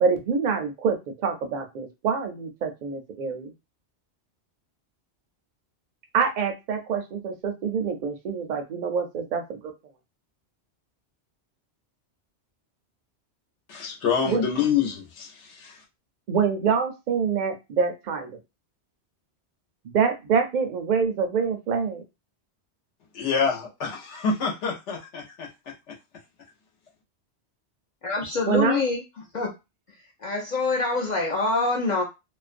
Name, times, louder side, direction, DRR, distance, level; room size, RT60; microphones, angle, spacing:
voice 1, 0.0-3.5 6.1-9.7 14.2-14.4 16.3-18.3 19.9-22.0 28.5-28.8, right 6 dB, 55° right, 0.5 m, -26 dB
voice 2, 13.7-15.8 23.1-26.0, left 6 dB, 80° left, 1.0 m, -27 dB
voice 3, 28.0-29.0 29.3-29.5 30.2-32.0, left 3 dB, 55° left, 0.5 m, -25 dB
2.4 x 2.1 x 2.4 m
omnidirectional pair, 1.2 m